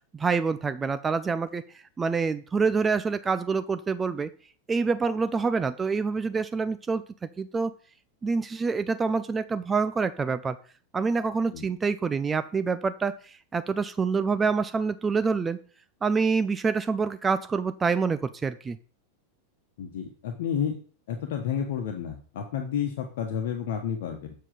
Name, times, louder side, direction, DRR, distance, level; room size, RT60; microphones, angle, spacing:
voice 1, 0.1-1.6 2.0-4.3 4.7-7.0 7.4-7.7 8.2-10.6 10.9-15.6 16.0-18.8, right 5 dB, 15° right, 12 dB, 0.5 m, -26 dB
voice 2, 19.8-20.7 21.1-24.3, left 8 dB, 55° left, 3 dB, 1.3 m, -31 dB
7.8 x 7.5 x 5.0 m, 0.43 s
figure-of-eight pair, 90°, 0 cm